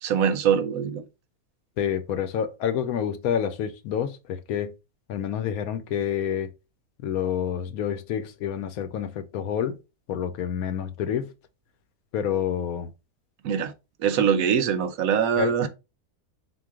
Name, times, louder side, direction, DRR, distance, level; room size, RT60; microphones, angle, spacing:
voice 1, 0.0-1.0 13.4-13.7 14.0-15.7, right 8 dB, 70° right, 1.0 m, -23 dB
voice 2, 1.8-4.7 5.1-6.5 7.0-9.8 10.1-11.3 12.1-12.9 15.4-15.7, left 9 dB, 75° left, 1.0 m, -28 dB
3.8 x 2.6 x 3.6 m
omnidirectional pair, 1.6 m